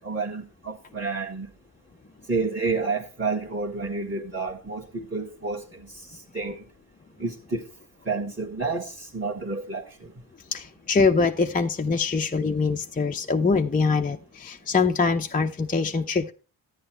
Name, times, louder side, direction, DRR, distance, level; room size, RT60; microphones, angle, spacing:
voice 1, 0.0-1.5 2.3-6.6 7.2-7.7 8.1-10.1, right 4 dB, 25° right, 1.6 m, -30 dB
voice 2, 10.5-16.3, left 4 dB, 15° left, 0.6 m, -23 dB
11.5 x 9.1 x 3.2 m
hypercardioid pair, 45°, 50 cm